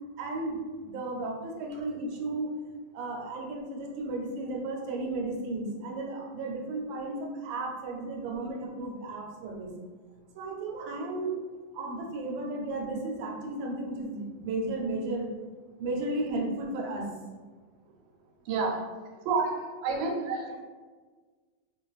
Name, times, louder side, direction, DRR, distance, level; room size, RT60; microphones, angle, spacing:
voice 1, 0.2-2.5 2.9-9.7 10.3-11.4 11.7-15.3 15.8-17.1 18.4-18.8 19.3-19.5 19.8-20.4, right 3 dB, 90° right, 0 dB, 1.3 m, -33 dB
voice 2, 20.0-20.6, left 2 dB, 90° left, -10 dB, 0.5 m, -45 dB
2.8 x 2.5 x 2.3 m, 1.4 s
omnidirectional pair, 2.0 m